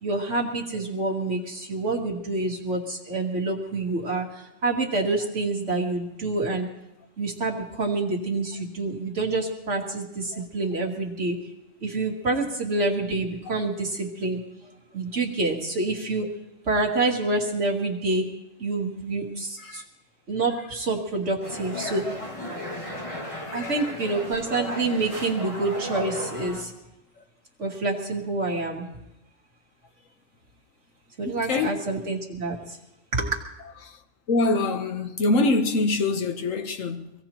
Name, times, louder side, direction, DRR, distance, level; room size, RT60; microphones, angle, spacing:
voice 1, 0.0-6.7 7.2-11.4 11.8-16.3 16.7-18.3 18.6-19.8 20.3-22.1 23.5-26.7 27.6-28.9 31.2-32.8 33.1-33.4, right 2 dB, 65° right, 1.8 m, -27 dB
sound 1, 21.4-26.6, equal, 25° left, 2.0 m, -35 dB
voice 2, 23.4-23.8 27.2-27.3 31.2-31.8 33.8-34.0 34.3-37.1, left 2 dB, 75° left, 1.4 m, -25 dB
24.5 x 16.5 x 3.0 m
omnidirectional pair, 1.3 m